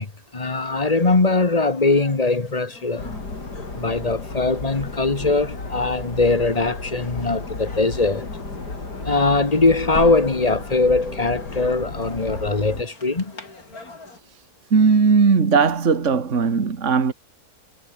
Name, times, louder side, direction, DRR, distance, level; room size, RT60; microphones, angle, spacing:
voice 1, 0.0-3.2 3.5-8.3 9.0-13.3, left 3 dB, 25° left, 1.5 m, -21 dB
sound 1, 0.5-14.2, left 3 dB, 65° left, 4.9 m, -46 dB
sound 2, 3.0-12.8, left 3 dB, 85° left, 5.0 m, -33 dB
voice 2, 14.7-17.1, right 5 dB, 50° right, 2.2 m, -18 dB
omnidirectional pair, 1.7 m